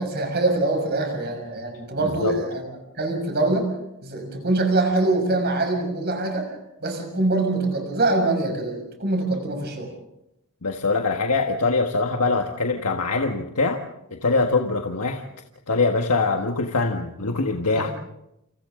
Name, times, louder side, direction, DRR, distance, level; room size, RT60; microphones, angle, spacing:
voice 1, 0.0-2.6 3.0-3.7 4.0-6.5 6.8-9.9 17.7-17.9, right 2 dB, 45° right, 4 dB, 6.3 m, -24 dB
voice 2, 2.0-2.4 10.6-13.8 14.1-15.2 15.7-17.9, left 3 dB, 85° left, 3 dB, 1.6 m, -23 dB
29.0 x 27.5 x 3.8 m, 0.84 s
head